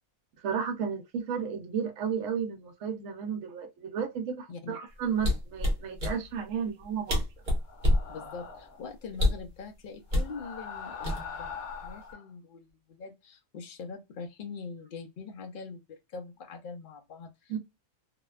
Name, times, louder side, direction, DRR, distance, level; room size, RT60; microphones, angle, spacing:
voice 1, 0.4-7.2 17.5-17.6, right 7 dB, 70° right, 1.0 m, -33 dB
sound 1, 5.2-6.2 6.8-6.9 7.1-8.1 9.1-9.5 10.1-10.3 11.0-11.5 11.8-12.1, left 1 dB, 40° right, 0.8 m, -26 dB
sound 2, 7.6-8.8 10.1-12.3, left 6 dB, 80° left, 1.1 m, -42 dB
voice 2, 8.1-11.5 11.8-17.6, left 5 dB, 60° left, 0.5 m, -43 dB
2.7 x 2.1 x 2.3 m
omnidirectional pair, 1.5 m